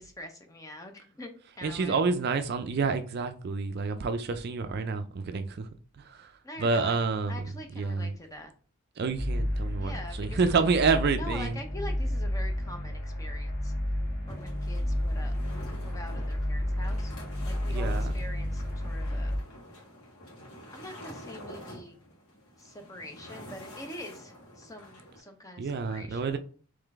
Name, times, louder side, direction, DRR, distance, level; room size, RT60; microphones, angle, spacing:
voice 1, 0.0-2.0 6.4-7.0 7.3-8.5 9.8-10.6 11.1-13.7 14.3-17.1 17.4-19.3 20.7-22.0 22.6-26.4, left 1 dB, 15° left, 0.6 m, -44 dB
voice 2, 1.6-5.7 6.0-6.3 6.6-7.4 7.8-8.1 9.0-11.6 17.7-18.1 25.6-26.4, right 4 dB, 45° right, 0.3 m, -28 dB
Cinematic Dramatic Buildup, 9.1-19.4, left 1 dB, 45° left, 1.3 m, -31 dB
sound 1, 14.3-25.2, equal, 80° left, 1.8 m, -47 dB
3.7 x 3.2 x 3.4 m
head